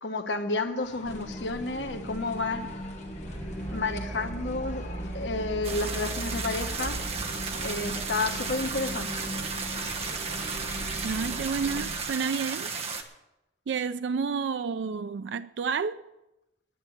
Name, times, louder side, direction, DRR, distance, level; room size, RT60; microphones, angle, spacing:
voice 1, 0.0-2.7 3.7-4.8 5.1-7.0 7.6-9.3, left 3 dB, 90° left, 1.3 m, -31 dB
sound 1, 0.8-11.3, left 2 dB, 40° left, 1.9 m, -48 dB
sound 2, 1.0-12.0, right 1 dB, 5° right, 6.6 m, -38 dB
sound 3, 5.6-13.0, right 5 dB, 35° right, 1.3 m, -34 dB
voice 2, 11.0-12.7 13.7-16.0, right 5 dB, 85° right, 0.4 m, -30 dB
11.0 x 9.7 x 8.7 m
head